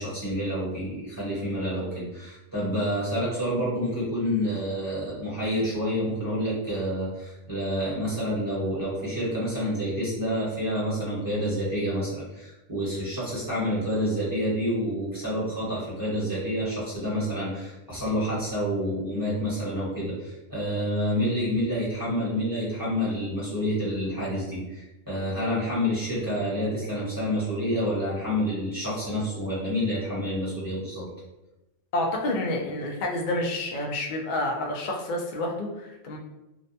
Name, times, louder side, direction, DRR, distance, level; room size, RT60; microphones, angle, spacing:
voice 1, 0.0-31.1, equal, 20° right, -8 dB, 0.9 m, -28 dB
voice 2, 31.9-36.2, left 1 dB, 65° left, 0 dB, 0.5 m, -29 dB
2.5 x 2.1 x 2.6 m, 0.97 s
omnidirectional pair, 1.3 m